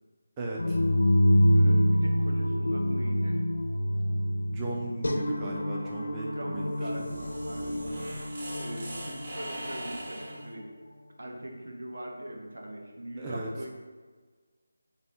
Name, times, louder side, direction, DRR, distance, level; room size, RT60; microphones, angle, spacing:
voice 1, 0.4-0.8 4.5-7.0 13.2-13.5, right 2 dB, 15° right, -2 dB, 0.4 m, -36 dB
sound 1, 0.6-10.5, equal, 80° left, 0.5 m, -27 dB
voice 2, 1.5-3.4 6.2-8.0 8.6-10.7 11.2-13.7, right 1 dB, 75° right, 1 dB, 0.8 m, -41 dB
sound 2, 6.6-10.5, right 1 dB, 45° right, 1.1 m, -41 dB
4.1 x 3.5 x 3.5 m, 1.5 s
figure-of-eight pair, 165°, 0 cm